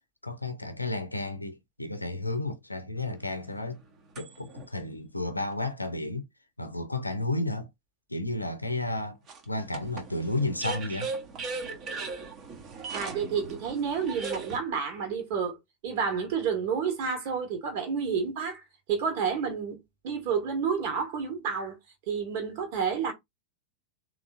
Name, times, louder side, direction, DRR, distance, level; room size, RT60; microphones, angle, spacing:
voice 1, 0.2-3.8 4.2-6.3 6.6-7.7 8.1-9.2 9.5-11.1, left 2 dB, 85° left, 0.5 m, -32 dB
sound 1, 3.0-4.7 5.4-5.5 9.3-14.6, right 4 dB, 30° right, 0.9 m, -38 dB
voice 2, 12.9-15.6 15.8-18.6 18.9-19.8 20.0-21.8 22.1-23.1, right 6 dB, 50° right, 1.5 m, -30 dB
3.7 x 2.9 x 2.5 m
figure-of-eight pair, 90°, 0 cm